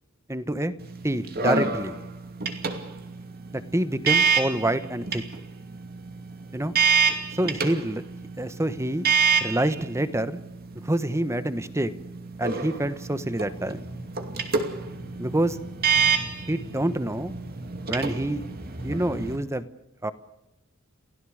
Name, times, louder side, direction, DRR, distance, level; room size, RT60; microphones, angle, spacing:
voice 1, 0.3-0.7 1.0-1.9 3.5-5.2 6.5-6.7 7.3-8.0 8.4-9.0 9.4-10.4 10.8-11.9 12.4-13.8 15.2-15.6 16.5-17.3 17.9-18.4 18.8-19.7 20.0-20.1, right 1 dB, 15° right, 13 dB, 1.2 m, -27 dB
sound 1, 0.8-19.4, right 5 dB, 45° right, 2.5 m, -28 dB
30.0 x 17.0 x 6.5 m, 0.90 s
head